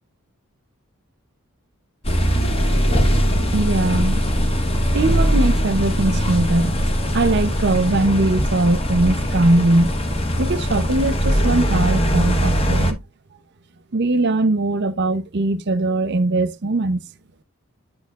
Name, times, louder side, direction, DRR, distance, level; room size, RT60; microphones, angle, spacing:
sound 1, 2.0-12.9, equal, 25° left, 1.0 m, -20 dB
voice 1, 3.5-4.2 4.9-6.7 7.1-9.9 10.4-13.0 13.9-17.0, right 2 dB, 50° right, 0.7 m, -20 dB
8.8 x 6.6 x 2.4 m
head